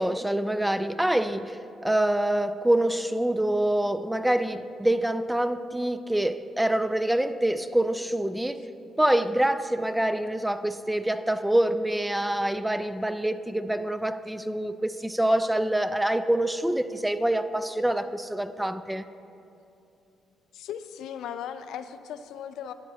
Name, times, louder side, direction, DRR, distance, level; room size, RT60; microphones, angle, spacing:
voice 1, 0.0-8.6 9.0-19.0, right 1 dB, 5° right, 12 dB, 0.3 m, -26 dB
voice 2, 20.5-22.7, left 9 dB, 80° left, 10 dB, 0.4 m, -37 dB
13.0 x 8.9 x 2.8 m, 2.7 s
cardioid pair, 90°, 0 cm